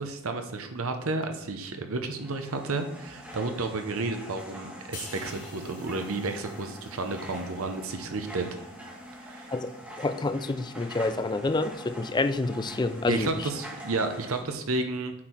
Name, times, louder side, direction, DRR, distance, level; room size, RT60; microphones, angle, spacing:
voice 1, 0.0-8.5 9.2-9.5 13.1-15.1, right 3 dB, 65° right, 6 dB, 0.8 m, -31 dB
sound 1, 2.0-14.4, equal, 5° right, 1.2 m, -44 dB
sound 2, 4.9-8.5 8.8-9.1, left 5 dB, 50° left, 1.9 m, -49 dB
voice 2, 10.0-13.3, left 3 dB, 20° left, 11 dB, 0.3 m, -28 dB
8.5 x 4.4 x 4.5 m, 0.89 s
head